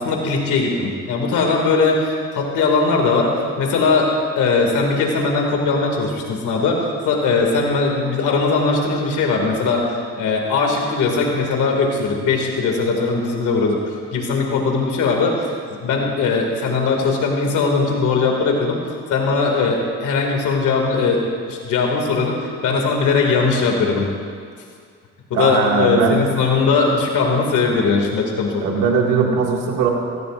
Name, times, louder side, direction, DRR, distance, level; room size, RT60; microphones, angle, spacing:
voice 1, 0.0-4.1 4.4-13.8 14.1-18.8 19.1-24.1 25.3-28.8, left 4 dB, 85° left, 0 dB, 2.4 m, -19 dB
voice 2, 25.3-26.2 28.6-29.9, right 5 dB, 90° right, -1 dB, 2.2 m, -19 dB
23.5 x 17.5 x 2.6 m, 2.1 s
cardioid pair, 90°, 30 cm